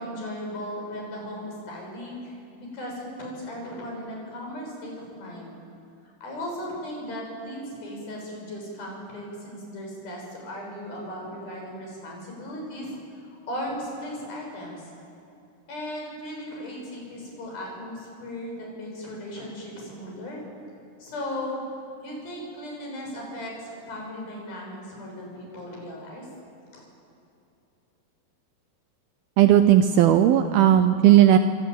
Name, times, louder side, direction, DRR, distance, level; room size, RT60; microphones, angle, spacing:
voice 1, 0.0-5.5 6.2-13.0 13.2-14.9 15.7-20.5 21.0-21.6 22.0-26.3 26.7-26.8, left 1 dB, 55° left, -1 dB, 8.7 m, -36 dB
voice 2, 29.4-31.4, right 11 dB, 75° right, 9 dB, 2.4 m, -16 dB
26.5 x 24.5 x 9.1 m, 2.7 s
omnidirectional pair, 5.0 m